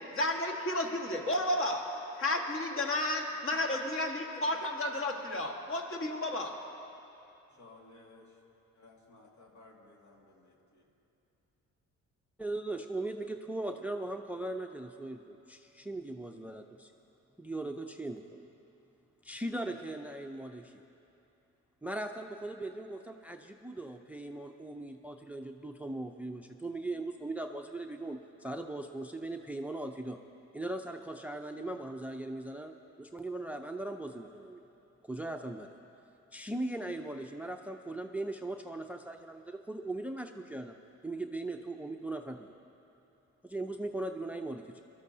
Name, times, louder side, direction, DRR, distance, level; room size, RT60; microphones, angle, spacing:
voice 1, 0.0-6.6, left 1 dB, 45° left, 2 dB, 1.6 m, -32 dB
voice 2, 7.6-8.2 9.1-10.8, left 2 dB, 70° left, -1 dB, 2.1 m, -57 dB
voice 3, 12.4-16.9 17.4-18.5 19.2-20.8 21.8-30.2 30.5-32.7 33.0-34.6 35.0-35.7 36.3-40.8 41.0-42.5 43.4-44.8, right 2 dB, 5° right, 6 dB, 0.5 m, -39 dB
21.0 x 13.0 x 2.7 m, 2.8 s
cardioid pair, 90°, 30 cm